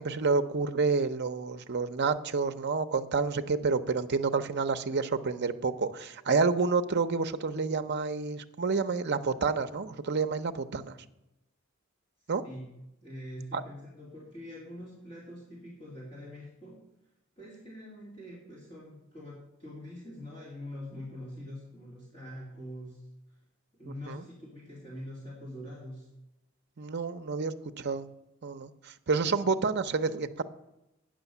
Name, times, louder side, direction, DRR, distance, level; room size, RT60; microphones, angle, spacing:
voice 1, 0.0-11.0 12.3-12.4 13.5-13.6 24.1-24.2 26.8-28.1 28.4-30.4, right 4 dB, 50° right, 10 dB, 0.6 m, -29 dB
voice 2, 13.0-16.8 17.4-23.1 23.7-26.1, left 1 dB, 30° left, -6 dB, 2.7 m, -44 dB
8.9 x 6.3 x 8.3 m, 0.91 s
head